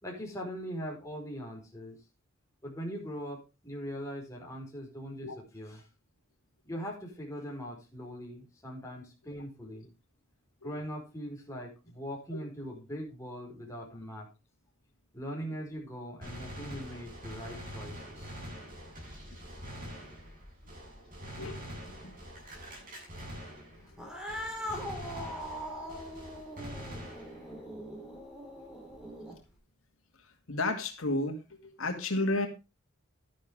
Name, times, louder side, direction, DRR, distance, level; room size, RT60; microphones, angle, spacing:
voice 1, 0.0-2.0 2.6-5.8 6.6-9.9 10.6-14.3 15.1-18.3, equal, 15° left, -1 dB, 4.7 m, -41 dB
Gunshot gunfire, 16.2-24.0 24.3-27.6, equal, 45° right, 7.9 m, -45 dB
voice 2, 21.3-21.7 22.0-22.1 24.0-24.1 30.5-31.4 31.6-32.5, left 2 dB, 85° left, 5 dB, 2.0 m, -32 dB
Cat, 23.9-29.5, equal, 5° right, 3.8 m, -41 dB
12.0 x 10.5 x 3.6 m, 0.27 s
head